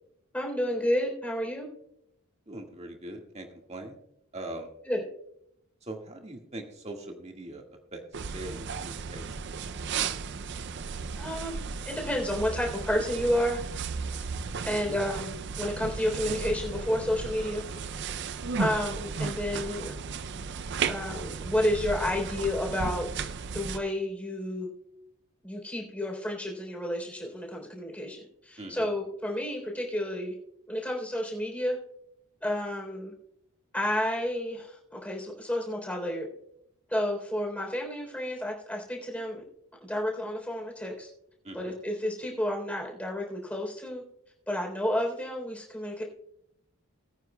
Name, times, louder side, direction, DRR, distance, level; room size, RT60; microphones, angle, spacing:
voice 1, 0.3-1.7 4.9-5.0 11.2-11.6 11.9-13.6 14.6-17.6 18.6-19.9 20.9-24.7 25.4-30.3 30.7-31.8 32.4-33.1 33.7-36.3 36.9-39.4 39.8-41.1 41.5-44.0 44.5-46.0, left 1 dB, 5° left, 0 dB, 3.5 m, -31 dB
voice 2, 2.5-4.0 4.3-4.7 5.8-7.6 7.9-8.0 8.3-9.4 14.6-14.9 28.6-28.9 41.4-41.8, right 1 dB, 30° right, 2 dB, 1.8 m, -41 dB
sound 1, 8.1-23.8, right 5 dB, 50° right, 0.5 m, -35 dB
21.5 x 9.3 x 2.3 m, 0.75 s
head